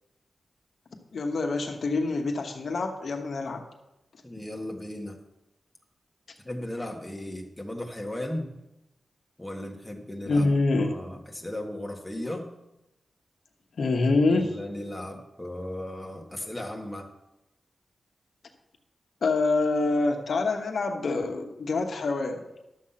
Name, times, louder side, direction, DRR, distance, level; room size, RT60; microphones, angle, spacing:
voice 1, 1.1-3.6 10.2-10.9 13.8-14.5 19.2-22.4, left 3 dB, 65° left, 4 dB, 1.2 m, -26 dB
voice 2, 4.2-5.2 6.4-8.5 9.4-10.4 10.8-12.5 14.3-17.1, left 1 dB, 5° left, 0 dB, 1.6 m, -36 dB
12.0 x 7.4 x 5.8 m, 0.93 s
wide cardioid pair, 105°, 0 cm